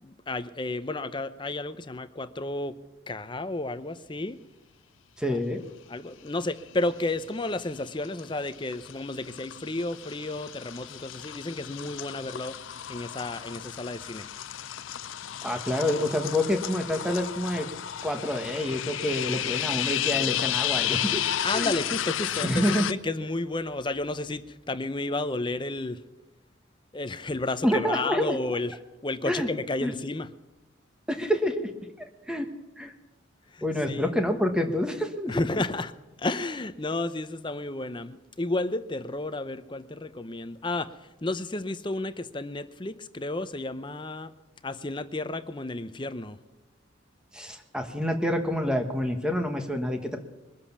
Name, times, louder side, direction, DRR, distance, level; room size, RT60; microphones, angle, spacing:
voice 1, 0.0-2.8 3.1-4.4 5.3-5.4 5.9-12.6 12.9-14.3 21.4-26.0 26.9-28.8 29.0-30.3 33.5-34.1 35.3-35.9 36.2-44.3 44.6-46.4, left 2 dB, 25° left, 11 dB, 0.6 m, -32 dB
voice 2, 5.2-5.6 15.4-17.7 18.0-21.2 21.5-21.7 22.4-22.9 27.6-28.4 29.3-29.5 29.8-29.9 31.1-31.7 32.0-32.5 32.8-32.9 33.6-35.5 47.3-50.2, left 1 dB, 5° right, 5 dB, 1.3 m, -27 dB
sound 1, 6.6-7.1 7.4-22.9, left 11 dB, 80° left, 0.5 m, -33 dB
22.0 x 7.7 x 7.1 m, 1.1 s
head